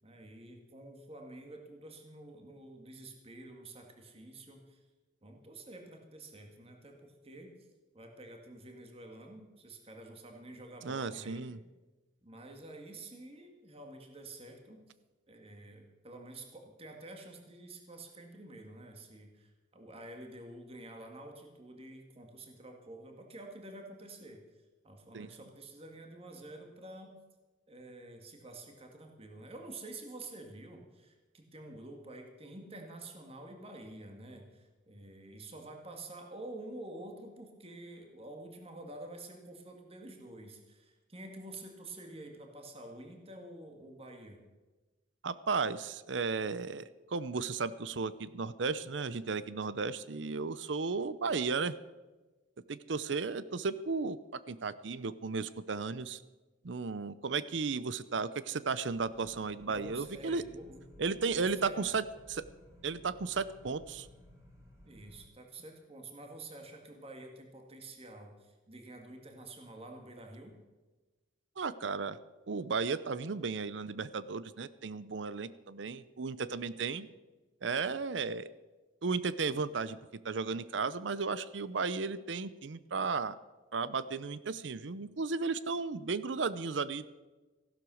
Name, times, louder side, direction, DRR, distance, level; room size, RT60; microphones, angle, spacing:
voice 1, 0.0-4.8 5.2-7.5 7.9-11.6 12.2-14.9 15.3-24.4 24.8-27.2 27.7-44.4 59.7-60.8 61.3-61.9 64.8-70.5, right 2 dB, 30° right, 3 dB, 2.0 m, -49 dB
voice 2, 10.8-11.6 25.1-25.3 45.2-51.7 52.7-56.2 56.6-60.4 61.0-62.0 62.3-62.4 62.8-64.1 71.6-72.2 72.5-77.1 77.6-78.5 79.0-80.0 80.2-83.4 83.7-87.1, right 4 dB, 75° right, 16 dB, 0.6 m, -34 dB
sound 1, 58.9-65.2, equal, 15° right, 3.5 m, -57 dB
15.5 x 12.0 x 6.3 m, 1.2 s
head